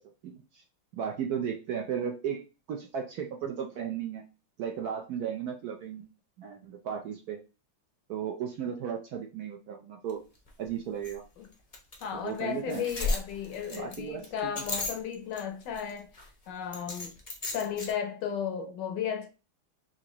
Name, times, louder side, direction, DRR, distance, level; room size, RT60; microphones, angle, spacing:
voice 1, 0.2-0.6 0.9-4.2 4.6-6.1 6.4-7.4 8.1-10.2 10.6-11.2 12.1-12.9 13.7-14.5, right 8 dB, 70° right, 0.9 m, -35 dB
sound 1, 10.1-10.2 10.5-10.6 11.0-11.1 11.7-12.0 12.4-12.5 12.7-15.4 15.7-16.3 16.7-17.9, left 3 dB, 45° left, 0.4 m, -34 dB
voice 2, 12.0-16.1 16.5-17.1 17.5-19.3, left 8 dB, 70° left, 1.2 m, -34 dB
5.9 x 2.5 x 2.9 m
omnidirectional pair, 2.1 m